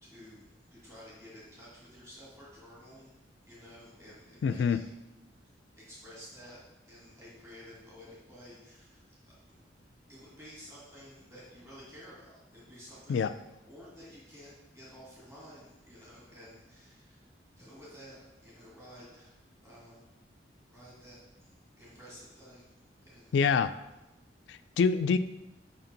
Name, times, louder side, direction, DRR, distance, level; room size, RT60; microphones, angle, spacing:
voice 1, 0.0-3.1 3.4-4.9 5.8-6.6 6.9-9.3 10.1-13.3 13.6-19.3 19.6-20.0 20.7-21.5 21.8-22.7 23.0-23.6, equal, 15° right, -7 dB, 1.9 m, -52 dB
voice 2, 4.4-4.8 13.1-13.3 23.3-23.7 24.5-25.2, left 5 dB, 80° left, 12 dB, 0.3 m, -26 dB
5.6 x 4.4 x 3.9 m, 0.98 s
head